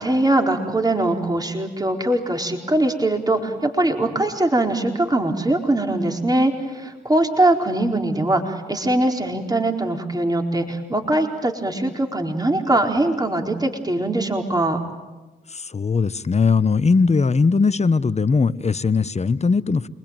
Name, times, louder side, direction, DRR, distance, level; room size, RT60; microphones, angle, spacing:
voice 1, 0.0-14.8, right 1 dB, 20° right, 3 dB, 4.4 m, -21 dB
voice 2, 15.5-19.9, left 4 dB, 35° left, 15 dB, 1.1 m, -19 dB
28.0 x 21.0 x 9.0 m, 1.2 s
supercardioid pair, 45°, 20 cm